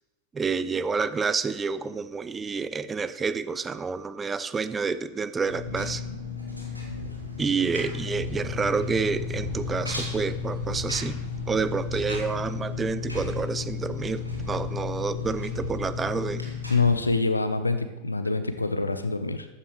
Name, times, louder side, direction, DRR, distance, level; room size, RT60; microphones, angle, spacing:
voice 1, 0.3-6.0 7.4-11.2 11.5-16.4, right 5 dB, 15° right, 15 dB, 0.5 m, -29 dB
Engine, 5.5-17.1, left 5 dB, 90° right, 2.5 m, -33 dB
sound 1, 8.3-13.6, equal, 5° left, 3.1 m, -43 dB
voice 2, 16.7-19.5, left 3 dB, 80° left, 10 dB, 0.9 m, -25 dB
14.5 x 11.5 x 3.1 m, 1.1 s
figure-of-eight pair, 90°, 0 cm